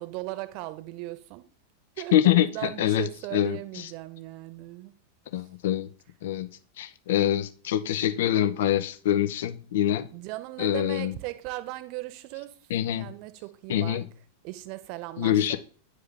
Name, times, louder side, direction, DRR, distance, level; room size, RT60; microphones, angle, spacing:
voice 1, 0.0-1.5 2.0-4.9 10.1-12.5 13.0-14.0 14.4-15.6, right 18 dB, 45° right, 0.9 m, -38 dB
voice 2, 2.1-2.5 2.8-3.1 3.3-3.9 5.3-5.9 6.2-6.5 6.8-10.1 10.6-11.2 12.7-13.1 13.7-14.0 15.2-15.6, left 11 dB, 55° left, 0.6 m, -25 dB
9.7 x 4.8 x 3.4 m
figure-of-eight pair, 90°, 0 cm